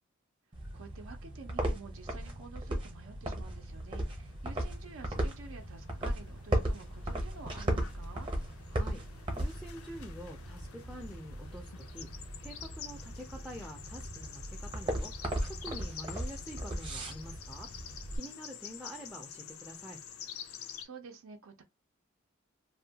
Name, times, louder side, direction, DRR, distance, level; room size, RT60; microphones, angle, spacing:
sound 1, 0.5-18.2, right 1 dB, 25° right, 0.7 m, -37 dB
voice 1, 0.7-8.3 20.5-21.6, right 4 dB, 70° right, 0.5 m, -50 dB
sound 2, 3.4-20.9, left 8 dB, 90° left, 0.4 m, -49 dB
voice 2, 8.7-17.7 18.1-20.0, equal, ahead, 0.4 m, -47 dB
2.7 x 2.2 x 2.7 m
head